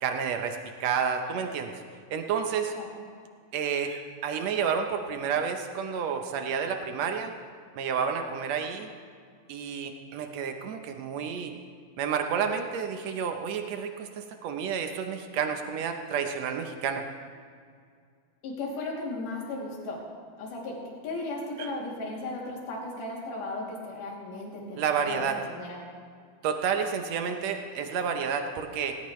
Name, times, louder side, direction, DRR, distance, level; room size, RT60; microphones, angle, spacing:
voice 1, 0.0-1.7 2.1-2.7 3.5-7.3 7.8-8.9 9.5-11.5 12.0-17.0 21.6-21.7 24.8-25.4 26.4-29.0, right 6 dB, 85° right, 5 dB, 1.5 m, -30 dB
voice 2, 18.4-20.0 20.4-25.8, left 2 dB, 80° left, -3 dB, 4.6 m, -36 dB
18.5 x 18.5 x 3.2 m, 2.1 s
omnidirectional pair, 4.3 m